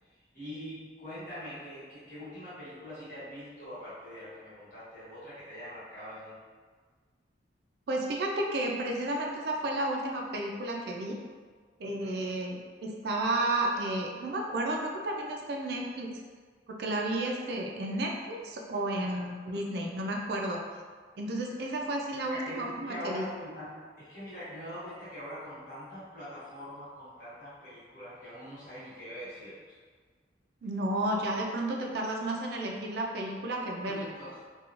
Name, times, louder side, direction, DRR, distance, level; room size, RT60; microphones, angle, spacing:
voice 1, 0.3-6.4 11.8-12.3 19.0-19.2 22.3-29.8 33.9-34.4, equal, 50° left, -11 dB, 1.3 m, -43 dB
voice 2, 7.9-11.2 11.8-16.1 16.7-20.6 21.2-23.2 30.6-34.1, right 1 dB, 65° right, 0 dB, 0.3 m, -32 dB
2.9 x 2.3 x 2.4 m, 1.5 s
head